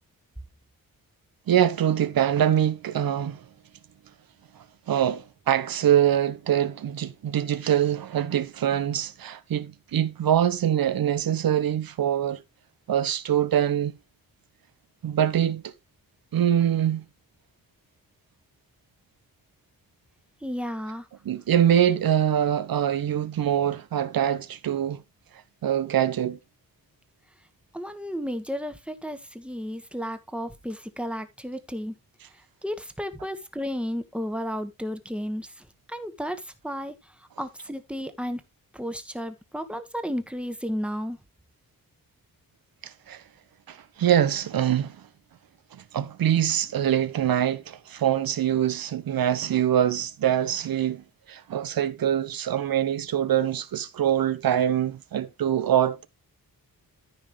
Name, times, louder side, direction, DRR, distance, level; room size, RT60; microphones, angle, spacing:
voice 1, 1.5-3.4 4.9-12.4 12.9-13.9 15.0-15.7 16.3-17.0 21.2-25.0 25.6-26.4 42.8-43.2 43.7-45.0 45.7-56.1, right 10 dB, 80° right, 1.0 m, -24 dB
voice 2, 20.4-21.0 27.7-31.9 32.6-35.5 35.9-36.9 37.4-38.4 38.7-41.2, equal, 5° right, 1.3 m, -33 dB
14.0 x 5.5 x 3.1 m
wide cardioid pair, 125°, 35 cm